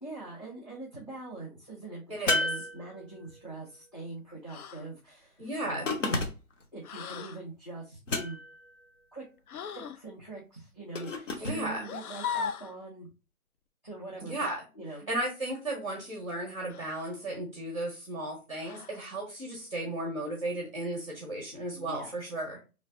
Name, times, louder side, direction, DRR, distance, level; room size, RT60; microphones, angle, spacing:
voice 1, 0.0-6.0 6.7-8.4 9.1-9.2 9.7-13.1 13.8-14.4 14.7-15.1 21.7-22.2, right 3 dB, 30° left, -4 dB, 0.5 m, -43 dB
voice 2, 2.1-2.4 5.4-5.9 11.3-11.8 14.2-14.6 15.1-22.6, right 1 dB, 25° right, -2 dB, 0.6 m, -35 dB
sound 1, 2.3-3.4 5.9-6.6 8.1-8.7 10.9-11.6, left 2 dB, 55° left, 0.9 m, -31 dB
sound 2, 4.5-4.9 6.8-7.4 9.5-10.0 11.8-12.8 14.4-14.6 16.7-17.2 18.6-19.1, left 7 dB, 80° left, 0.6 m, -38 dB
4.0 x 3.2 x 2.6 m, 0.31 s
hypercardioid pair, 175°, 44 cm